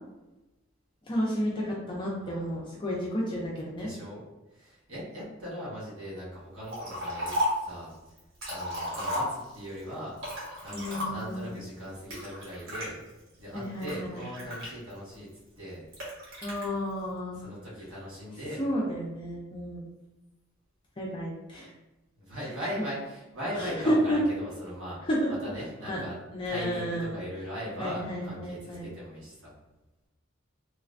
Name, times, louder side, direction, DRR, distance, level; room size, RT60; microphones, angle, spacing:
voice 1, 1.1-3.9 10.7-11.5 13.5-14.2 16.4-17.4 18.6-19.9 21.0-21.7 23.5-24.2 25.1-25.3 25.9-26.0 26.3-27.2 27.8-28.9, equal, 25° left, -4 dB, 0.4 m, -31 dB
voice 2, 2.2-2.7 3.8-4.2 4.5-7.9 8.5-10.2 10.6-13.0 13.4-15.3 15.6-15.8 17.4-18.6 22.1-25.0 25.3-26.1 26.4-29.5, equal, 90° right, -7 dB, 1.4 m, -39 dB
Liquid, 6.7-7.7 8.2-9.7 10.2-11.4 12.1-12.9 13.5-15.1 15.9-16.6, left 1 dB, 70° right, 1.1 m, -33 dB
3.1 x 2.1 x 2.4 m, 1.0 s
head